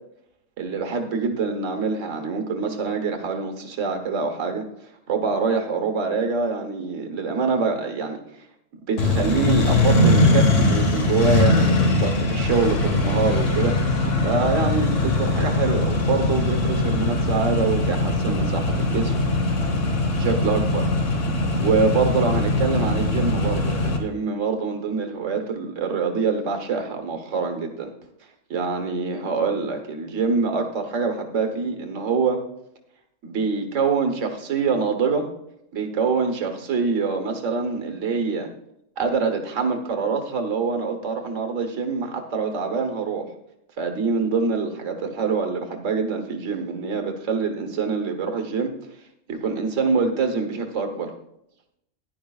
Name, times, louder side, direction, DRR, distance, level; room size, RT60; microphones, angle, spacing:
voice 1, 0.6-4.6 5.1-8.2 8.7-13.7 14.2-19.1 19.4-19.5 20.2-20.9 21.6-27.9 28.5-32.4 33.2-35.3 35.7-38.5 39.0-43.3 43.8-48.7 49.3-51.1, right 4 dB, 75° right, 5 dB, 1.5 m, -25 dB
Accelerating revving vroom, 9.0-24.0, left 2 dB, 75° left, 1.6 m, -21 dB
14.5 x 10.5 x 2.4 m, 0.80 s
omnidirectional pair, 1.3 m